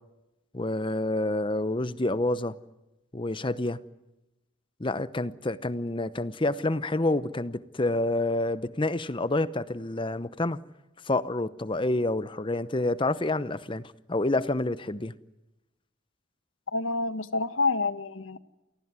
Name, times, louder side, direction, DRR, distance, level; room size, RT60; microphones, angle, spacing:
voice 1, 0.5-2.6 3.1-3.8 4.8-10.6 11.0-13.8 14.1-15.1, left 2 dB, 25° left, 0.8 m, -28 dB
voice 2, 16.7-18.4, left 3 dB, 85° left, 1.3 m, -28 dB
28.5 x 19.0 x 9.6 m
head